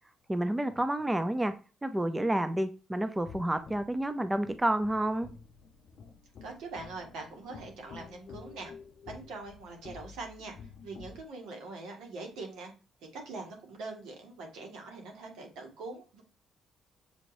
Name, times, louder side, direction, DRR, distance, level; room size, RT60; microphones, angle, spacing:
voice 1, 0.3-1.5 1.8-5.3, right 1 dB, 10° right, 10 dB, 0.5 m, -29 dB
sound 1, 3.2-11.3, left 5 dB, 60° left, 0.5 m, -50 dB
voice 2, 6.4-8.7 9.0-12.7 13.1-16.2, right 3 dB, 85° right, 2 dB, 1.6 m, -43 dB
6.8 x 3.0 x 2.6 m, 0.34 s
cardioid pair, 90°, 0 cm